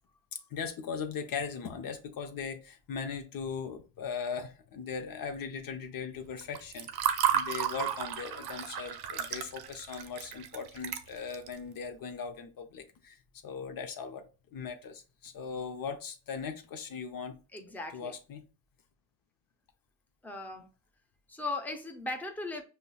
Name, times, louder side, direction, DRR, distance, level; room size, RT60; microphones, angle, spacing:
voice 1, 0.5-14.2 14.5-17.3 17.9-18.4, left 6 dB, 50° left, 0.7 m, -39 dB
Water / Fill (with liquid), 6.4-11.5, right 10 dB, 60° right, 0.6 m, -33 dB
voice 2, 17.5-18.1 20.2-20.7 21.3-22.6, left 2 dB, 5° left, 0.7 m, -37 dB
5.2 x 2.0 x 2.3 m
supercardioid pair, 65°, 43 cm